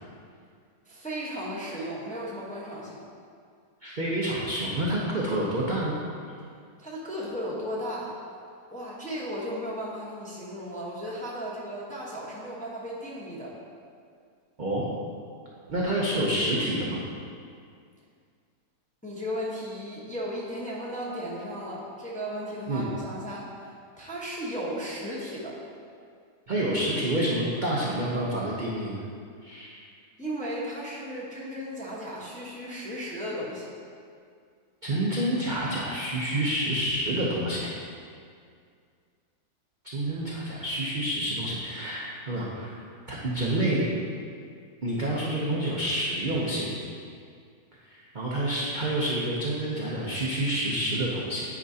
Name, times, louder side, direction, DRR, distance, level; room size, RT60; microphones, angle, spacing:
voice 1, 0.9-3.0 6.8-8.1 8.7-13.6 19.0-25.6 30.2-33.7, equal, 5° left, -6 dB, 0.8 m, -35 dB
voice 2, 3.8-6.0 14.6-14.8 15.7-17.0 22.7-22.9 26.5-29.0 29.4-29.8 34.8-37.7 39.8-42.8 43.1-43.9 44.8-46.7 47.9-51.4, right 1 dB, 45° right, -5 dB, 0.6 m, -28 dB
9.7 x 5.1 x 2.8 m, 2.2 s
omnidirectional pair, 1.7 m